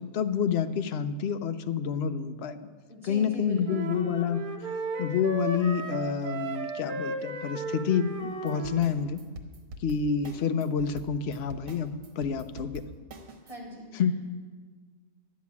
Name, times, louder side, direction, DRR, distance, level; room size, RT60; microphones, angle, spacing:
voice 1, 0.0-2.6 3.0-4.4 5.0-9.2 9.8-12.8 13.9-14.1, left 7 dB, 55° left, 9 dB, 0.7 m, -28 dB
voice 2, 2.9-3.9 13.4-14.1, equal, 20° right, -3 dB, 4.2 m, -42 dB
sound 1, 3.6-8.8, right 3 dB, 40° right, 1.1 m, -35 dB
sound 2, 8.2-13.6, right 1 dB, 65° right, 1.5 m, -44 dB
11.5 x 7.3 x 9.4 m, 1.4 s
omnidirectional pair, 1.6 m